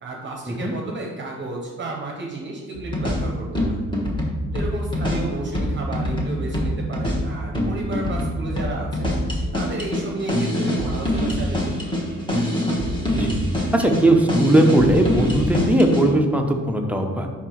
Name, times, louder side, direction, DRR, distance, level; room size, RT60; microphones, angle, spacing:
voice 1, 0.0-3.6 4.5-9.1 9.5-12.1, right 2 dB, 40° right, 0 dB, 0.8 m, -32 dB
sound 1, 2.8-16.1, equal, 15° left, 1.3 m, -24 dB
voice 2, 13.1-13.4 13.7-17.3, right 1 dB, 5° right, 2 dB, 0.7 m, -19 dB
5.7 x 4.4 x 4.4 m, 1.5 s
cardioid pair, 130°, 30 cm